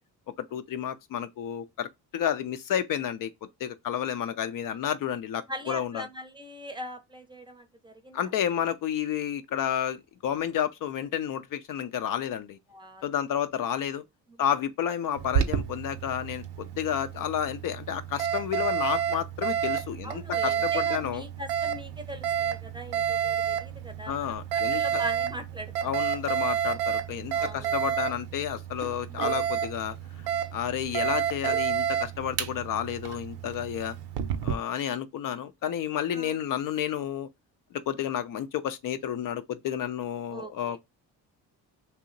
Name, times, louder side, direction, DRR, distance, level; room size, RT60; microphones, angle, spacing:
voice 1, 0.4-3.3 3.6-6.0 8.1-12.6 13.0-14.0 14.4-21.2 24.1-25.0 25.8-30.0 30.5-34.0 34.4-37.3 37.9-40.8, left 9 dB, 55° left, 0.5 m, -31 dB
voice 2, 5.5-8.3 12.7-13.0 20.0-25.9 27.3-27.8 29.1-29.4 36.1-36.4 40.3-40.8, right 1 dB, 10° right, 0.6 m, -41 dB
Alarm, 15.2-34.5, right 9 dB, 80° right, 0.6 m, -30 dB
2.8 x 2.0 x 3.8 m
cardioid pair, 100°, 39 cm